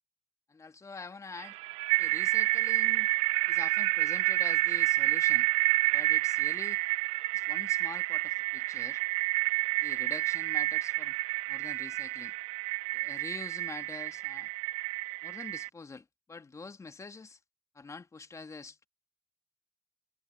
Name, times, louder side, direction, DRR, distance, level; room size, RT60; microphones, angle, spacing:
voice 1, 0.5-1.6 2.0-3.1 3.5-5.5 5.9-6.9 7.3-9.0 9.8-11.2 11.5-12.3 12.9-14.5 15.2-17.4 17.7-18.9, left 4 dB, 30° left, 2.4 m, -45 dB
sound 1, 1.4-15.7, right 23 dB, 75° right, 0.6 m, -29 dB
hypercardioid pair, 45°, 10 cm